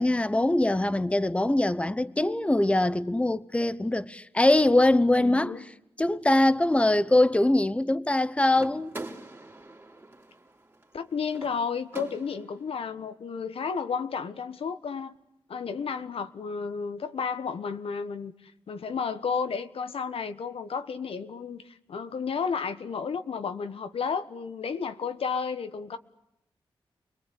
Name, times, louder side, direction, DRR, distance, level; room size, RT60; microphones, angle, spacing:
voice 1, 0.0-5.6 6.0-8.9, left 1 dB, 15° left, 1.0 m, -23 dB
voice 2, 5.2-5.6 10.9-15.1 15.5-26.0, left 6 dB, 80° left, 1.4 m, -32 dB
sound 1, 8.5-12.6, right 2 dB, 25° right, 3.3 m, -44 dB
29.5 x 21.5 x 8.5 m
wide cardioid pair, 80°, 9 cm